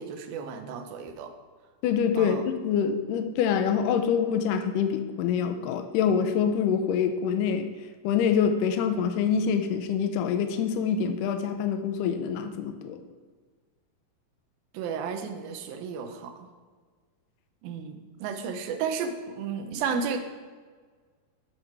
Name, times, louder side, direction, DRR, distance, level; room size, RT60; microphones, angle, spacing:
voice 1, 0.0-1.3 2.2-2.4 14.7-16.4 17.6-20.2, right 6 dB, 85° right, 7 dB, 2.5 m, -33 dB
voice 2, 1.8-2.4 2.6-7.7 8.0-13.0, left 7 dB, 80° left, 8 dB, 2.1 m, -25 dB
13.0 x 4.6 x 4.7 m, 1.5 s
omnidirectional pair, 4.1 m